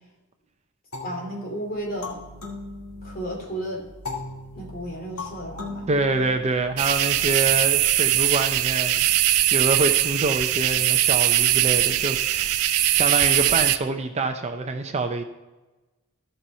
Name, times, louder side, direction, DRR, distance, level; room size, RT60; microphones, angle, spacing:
sound 1, 0.9-3.4 4.0-6.8, left 3 dB, 80° left, 2.4 m, -38 dB
voice 1, 1.0-2.2 3.0-3.8 4.5-5.9, right 1 dB, 40° left, 0 dB, 2.6 m, -33 dB
sound 2, 1.7-9.5, right 1 dB, 45° right, 1.7 m, -49 dB
voice 2, 5.9-15.2, right 3 dB, 30° right, 6 dB, 0.5 m, -26 dB
sound 3, 6.8-13.8, right 13 dB, 80° right, 0.5 m, -21 dB
14.5 x 5.6 x 4.4 m, 1.2 s
head